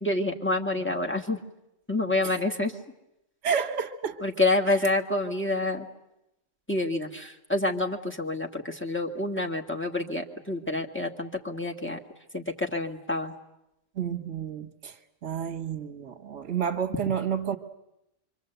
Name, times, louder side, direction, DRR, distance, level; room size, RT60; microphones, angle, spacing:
voice 1, 0.0-1.4 1.9-2.7 4.2-5.9 6.7-12.0 12.3-13.3, left 2 dB, 10° left, 1.8 m, -28 dB
voice 2, 3.4-4.2 13.9-15.0 15.2-17.6, right 7 dB, 75° right, 1.7 m, -30 dB
26.5 x 24.5 x 8.1 m
omnidirectional pair, 1.3 m